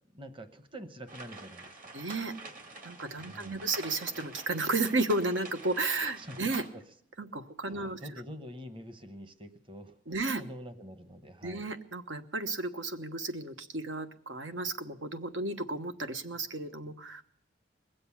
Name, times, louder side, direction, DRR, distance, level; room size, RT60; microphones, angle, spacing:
voice 1, 0.1-1.8 3.2-3.7 6.2-6.4 6.7-6.8 7.7-11.7, equal, 30° right, 9 dB, 1.1 m, -46 dB
sound 1, 1.1-6.7, right 3 dB, 50° right, 2.0 m, -47 dB
voice 2, 1.9-2.3 2.8-6.6 7.2-8.0 10.1-10.4 11.4-17.2, right 2 dB, 85° right, 8 dB, 1.2 m, -33 dB
21.0 x 7.8 x 8.6 m, 0.67 s
head